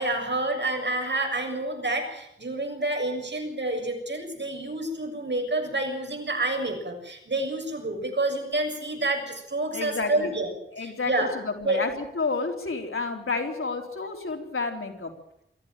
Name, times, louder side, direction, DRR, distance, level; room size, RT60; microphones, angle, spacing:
voice 1, 0.0-10.5 10.8-11.3 11.6-11.8, right 2 dB, 60° right, 4 dB, 7.0 m, -28 dB
voice 2, 9.7-10.3 10.7-15.2, left 3 dB, 85° left, 3 dB, 3.9 m, -30 dB
23.5 x 15.0 x 9.1 m, 0.79 s
wide cardioid pair, 70°, 21 cm